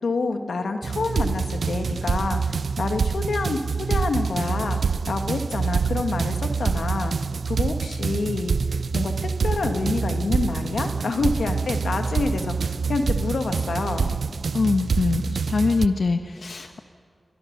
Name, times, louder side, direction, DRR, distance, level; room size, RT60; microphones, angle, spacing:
voice 1, 0.0-3.6 3.9-4.8 5.1-8.5 8.9-14.2, left 3 dB, 90° left, 6 dB, 1.6 m, -27 dB
sound 1, 0.8-15.9, right 5 dB, 80° right, 0.6 m, -26 dB
voice 2, 14.5-16.8, left 4 dB, 70° left, 6 dB, 1.0 m, -23 dB
28.0 x 23.0 x 6.7 m, 2.3 s
wide cardioid pair, 75°, 0 cm